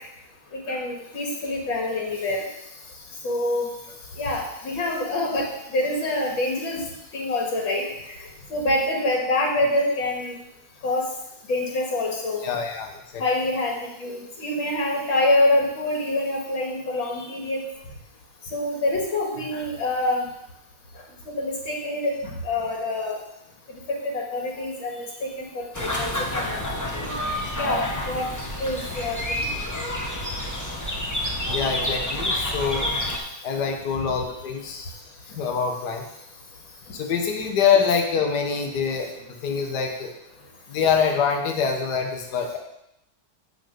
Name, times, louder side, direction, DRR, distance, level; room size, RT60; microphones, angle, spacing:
voice 1, 0.5-2.4 3.2-3.7 4.2-5.5 5.7-6.8 7.1-7.9 8.5-10.4 10.8-11.0 11.5-12.5 13.2-13.7 14.0-17.6 18.5-20.2 21.4-23.2 23.9-26.6 26.9-27.1 27.6-28.3 28.6-29.2, left 2 dB, 75° left, -1 dB, 2.7 m, -26 dB
voice 2, 12.4-13.2 31.4-32.9 33.4-34.9 35.3-36.0 36.9-39.1 39.4-40.1 40.7-42.6, left 6 dB, 55° left, 2 dB, 1.7 m, -25 dB
sound 1, 25.7-33.2, left 1 dB, 15° left, 0.7 m, -28 dB
10.0 x 4.1 x 6.7 m, 0.82 s
omnidirectional pair, 2.2 m